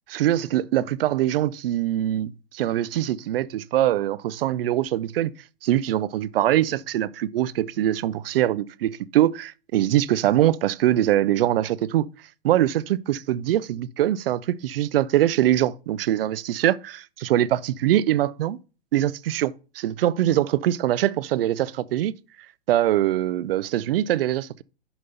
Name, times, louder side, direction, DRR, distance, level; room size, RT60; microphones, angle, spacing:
voice 1, 0.1-5.3 5.6-12.1 12.4-16.8 17.2-18.6 18.9-22.1 22.7-24.6, right 13 dB, 60° right, 0.5 m, -23 dB
7.0 x 5.3 x 5.3 m
hypercardioid pair, 110°, 32 cm